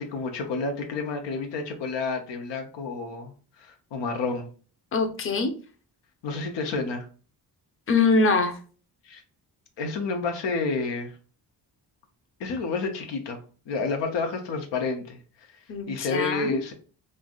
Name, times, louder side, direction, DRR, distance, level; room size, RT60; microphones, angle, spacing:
voice 1, 0.0-4.5 6.2-7.0 9.0-9.2 9.8-11.2 12.4-13.4 13.7-15.5 15.9-16.7, left 4 dB, 85° left, 4 dB, 0.7 m, -30 dB
voice 2, 4.9-5.5 7.9-8.6 15.7-16.6, left 3 dB, 30° left, 6 dB, 0.6 m, -23 dB
3.2 x 2.5 x 2.3 m, 0.39 s
cardioid pair, 75°, 42 cm